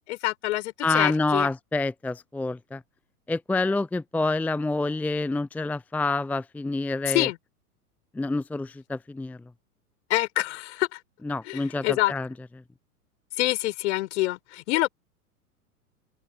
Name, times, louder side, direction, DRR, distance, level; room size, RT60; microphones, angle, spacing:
voice 1, 0.1-1.5 7.1-7.4 10.1-11.0 11.4-12.1 13.4-14.9, left 17 dB, 50° left, 6.0 m, -26 dB
voice 2, 0.8-2.8 3.3-7.3 8.1-9.4 11.2-12.3, left 3 dB, 5° left, 0.8 m, -27 dB
open air
figure-of-eight pair, 100°, 45 cm